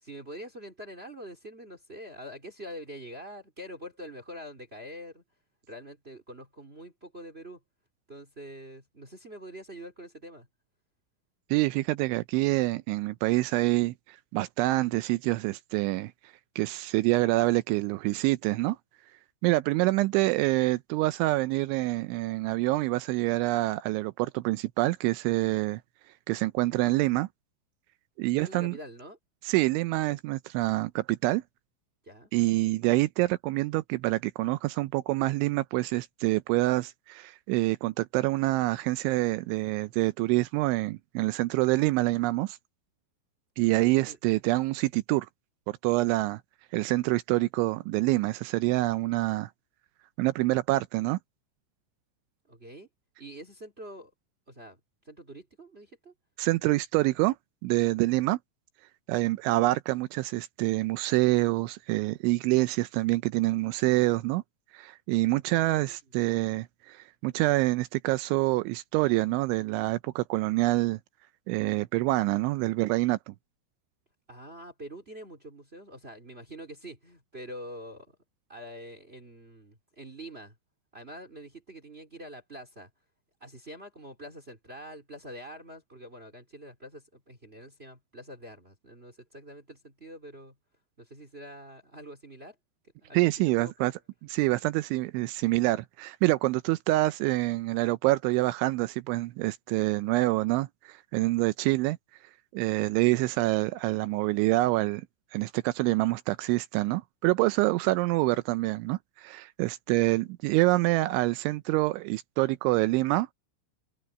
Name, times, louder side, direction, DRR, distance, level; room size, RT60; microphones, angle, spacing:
voice 1, 0.0-5.2 5.7-7.6 8.1-10.5 28.3-29.2 32.0-32.3 43.8-44.2 52.5-52.9 53.2-54.1 54.5-54.8 55.0-56.1 65.5-66.1 74.3-78.1 78.5-80.5 80.9-82.9 83.4-90.5 91.0-92.5 93.0-93.9, equal, 25° right, 1.5 m, -45 dB
voice 2, 11.5-16.1 16.6-18.8 19.4-25.8 26.3-27.3 28.2-28.8 29.5-31.4 32.3-42.6 43.6-45.3 45.7-46.4 46.7-49.5 50.2-51.2 56.4-57.4 57.6-58.4 59.1-64.4 64.7-71.0 71.5-73.3 93.1-93.9 94.3-102.0 102.5-105.1 105.3-113.3, right 20 dB, 80° right, 2.8 m, -26 dB
omnidirectional pair, 5.8 m